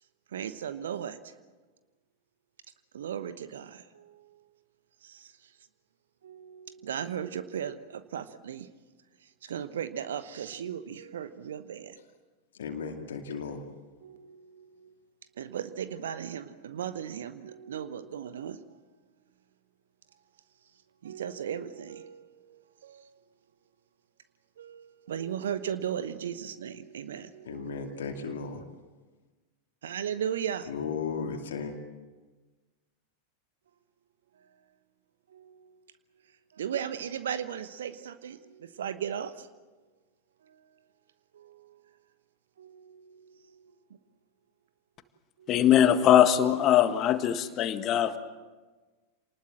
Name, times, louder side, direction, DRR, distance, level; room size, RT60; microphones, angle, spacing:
voice 1, 0.3-1.4 2.9-4.4 5.0-5.5 6.2-8.7 9.2-12.0 14.0-14.9 15.4-18.6 21.0-23.3 24.6-28.5 29.8-30.7 31.0-31.1 34.4-34.5 35.3-35.8 36.5-39.5 40.4-40.6 41.3-41.8 42.6-43.7 45.4-45.6, right 9 dB, 65° right, 12 dB, 1.0 m, -37 dB
voice 2, 12.6-13.6 27.4-28.6 30.7-31.8, left 5 dB, 60° left, 3 dB, 2.4 m, -35 dB
voice 3, 45.5-48.2, left 10 dB, 35° left, 10 dB, 1.6 m, -21 dB
28.0 x 20.0 x 7.6 m, 1.3 s
figure-of-eight pair, 90°, 0 cm